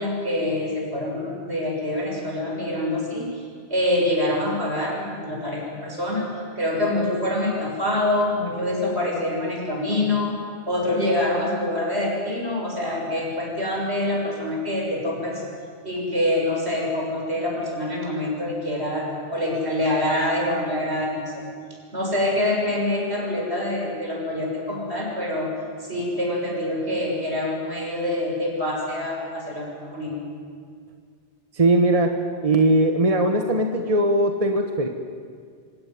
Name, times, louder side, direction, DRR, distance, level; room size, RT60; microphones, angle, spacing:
voice 1, 0.0-3.4 3.7-6.3 6.6-10.4 10.7-15.4 15.8-19.1 19.3-21.4 21.9-25.5 25.8-30.2, left 1 dB, 65° right, -2 dB, 7.1 m, -25 dB
voice 2, 31.5-34.9, right 1 dB, 30° right, 4 dB, 1.4 m, -20 dB
26.5 x 17.5 x 9.4 m, 2.1 s
omnidirectional pair, 1.2 m